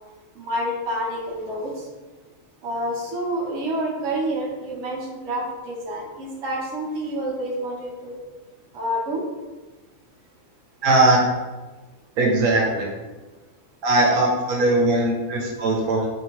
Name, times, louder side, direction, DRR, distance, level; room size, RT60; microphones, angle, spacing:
voice 1, 0.4-1.7 2.6-8.2 8.7-9.2, right 1 dB, 55° right, -4 dB, 1.2 m, -28 dB
voice 2, 10.8-11.2 12.2-12.9 13.8-16.1, right 2 dB, 90° right, -2 dB, 1.2 m, -19 dB
4.3 x 2.8 x 3.0 m, 1.2 s
omnidirectional pair, 1.5 m